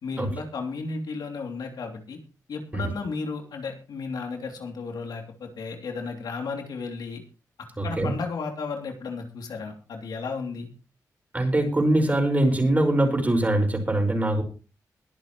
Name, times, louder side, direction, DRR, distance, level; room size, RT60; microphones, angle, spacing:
voice 1, 0.0-2.2 2.5-7.2 7.8-10.7, left 4 dB, 85° left, 3 dB, 3.0 m, -34 dB
voice 2, 7.8-8.1 11.3-14.4, right 1 dB, 25° right, 3 dB, 5.4 m, -22 dB
22.0 x 8.8 x 3.1 m, 0.34 s
cardioid pair, 75°, 7 cm